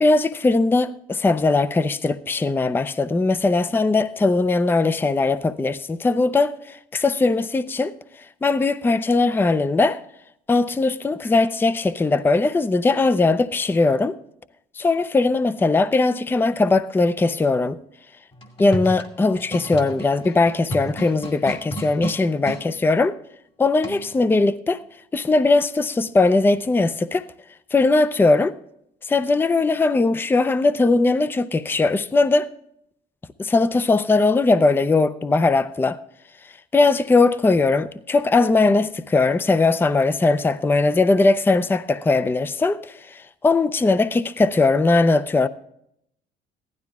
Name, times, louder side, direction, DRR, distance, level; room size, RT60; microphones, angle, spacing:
voice 1, 0.0-7.9 8.4-10.0 10.5-14.2 14.8-17.8 18.6-23.2 23.6-24.8 25.1-27.3 27.7-28.5 29.1-32.5 33.4-36.0 36.7-45.5, left 3 dB, 10° left, 0.5 m, -19 dB
sound 1, 18.3-22.6 23.8-24.2, right 1 dB, 35° left, 1.9 m, -33 dB
15.5 x 12.0 x 3.5 m
cardioid pair, 110°, 17 cm